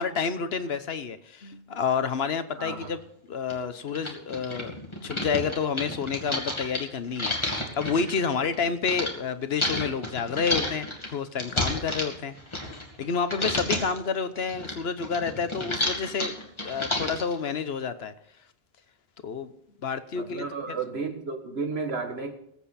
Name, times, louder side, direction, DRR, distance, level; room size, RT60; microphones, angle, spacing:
voice 1, 0.0-3.0 3.3-4.8 5.0-16.3 16.6-18.1 19.2-19.5 19.8-20.8, left 6 dB, 75° left, 11 dB, 1.2 m, -29 dB
voice 2, 2.6-2.9 20.1-22.3, right 4 dB, 80° right, 5 dB, 1.9 m, -32 dB
sound 1, 2.8-2.9 3.5-3.6 3.9-9.1 9.6-13.0 13.3-14.0 14.3-17.3, left 1 dB, 25° left, 2.3 m, -30 dB
20.5 x 8.4 x 4.2 m, 0.71 s
omnidirectional pair, 1.0 m